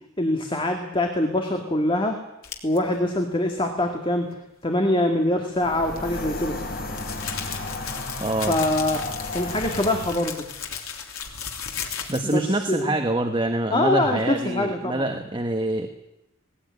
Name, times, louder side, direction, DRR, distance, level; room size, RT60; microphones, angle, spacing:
voice 1, 0.2-2.2 2.6-4.3 4.6-6.6 8.5-9.0 9.3-10.4 12.2-12.9 13.7-15.2, left 1 dB, 25° left, 4 dB, 2.0 m, -24 dB
sound 1, 2.4-2.8 5.9-12.5, left 7 dB, 85° left, 3.4 m, -35 dB
sound 2, 5.6-10.2, left 2 dB, 45° left, 3.6 m, -33 dB
voice 2, 8.2-8.6 12.1-15.9, right 1 dB, 20° right, 5 dB, 1.4 m, -25 dB
19.5 x 19.0 x 9.7 m, 0.89 s
head